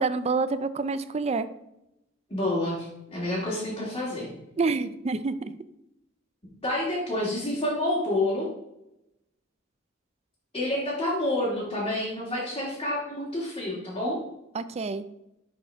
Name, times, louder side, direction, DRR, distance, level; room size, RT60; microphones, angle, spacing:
voice 1, 0.0-1.5 4.6-5.5 14.5-15.0, right 4 dB, 35° right, 12 dB, 0.4 m, -27 dB
voice 2, 2.3-4.3 6.6-8.5 10.5-14.2, left 1 dB, 30° left, -8 dB, 2.1 m, -28 dB
10.5 x 4.5 x 3.5 m, 0.86 s
head